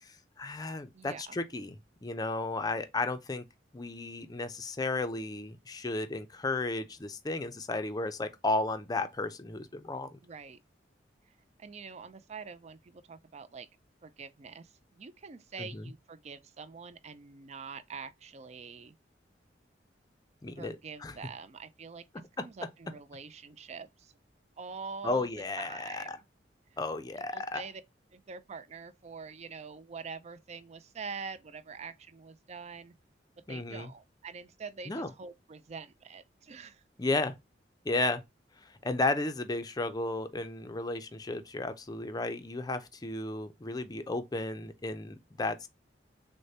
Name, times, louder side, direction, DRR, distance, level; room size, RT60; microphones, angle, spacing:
voice 1, 0.0-3.4 3.7-10.2 15.6-15.9 20.4-20.8 21.0-21.1 25.0-26.2 26.8-27.6 33.5-33.9 34.9-35.1 37.0-37.3 37.9-38.2 38.6-45.7, left 2 dB, 20° left, 0.5 m, -34 dB
voice 2, 0.9-1.4 10.2-10.6 11.3-11.4 11.6-13.7 14.0-19.0 20.6-22.0 22.4-24.1 24.6-25.3 25.6-26.2 26.7-26.8 27.2-27.8 28.1-32.9 33.5-36.8, right 5 dB, 40° right, 0.4 m, -45 dB
6.3 x 2.2 x 2.7 m
head